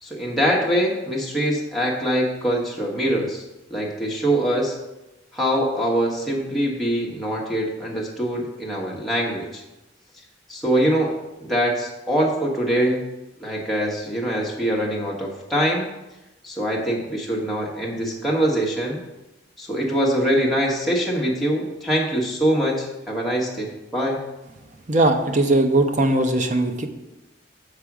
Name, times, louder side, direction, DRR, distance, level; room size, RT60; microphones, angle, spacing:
voice 1, 0.0-3.4 3.7-4.7 5.3-9.6 10.5-11.1 11.4-13.0 13.4-15.9 16.4-19.0 19.6-24.2, equal, ahead, -4 dB, 1.3 m, -23 dB
voice 2, 24.9-26.9, right 2 dB, 40° right, 6 dB, 0.7 m, -19 dB
6.7 x 4.9 x 6.0 m, 0.99 s
head